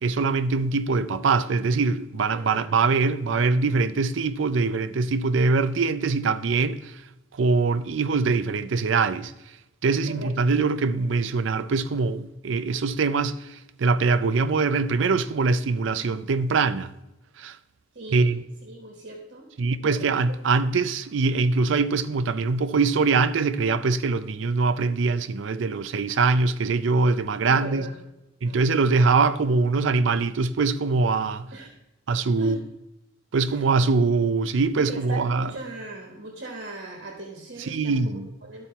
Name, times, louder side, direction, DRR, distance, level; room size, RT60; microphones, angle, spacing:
voice 1, 0.0-6.8 7.4-9.3 9.8-13.4 13.8-16.9 17.4-17.6 18.1-18.4 19.6-27.9 28.4-31.5 32.1-32.6 33.3-35.5 37.7-38.3, right 4 dB, 75° right, 0.5 m, -23 dB
voice 2, 2.3-2.7 5.3-5.5 10.1-10.3 17.9-18.3 18.6-19.5 19.9-20.1 27.4-28.0 28.4-28.7 31.5-31.7 32.4-32.6 33.5-33.6 34.8-38.7, right 2 dB, 60° right, 1.3 m, -39 dB
12.0 x 4.3 x 4.4 m
head